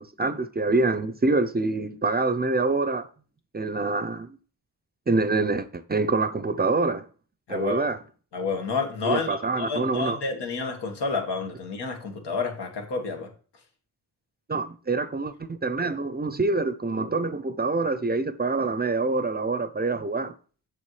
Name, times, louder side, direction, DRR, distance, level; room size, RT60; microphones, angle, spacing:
voice 1, 0.0-3.1 3.5-4.4 5.1-7.0 7.5-8.0 9.0-10.2 14.5-20.3, right 3 dB, 25° right, 0.5 m, -26 dB
voice 2, 7.5-7.9 8.3-13.3, left 4 dB, 85° left, 1.6 m, -29 dB
7.4 x 6.4 x 3.2 m
cardioid pair, 70°, 40 cm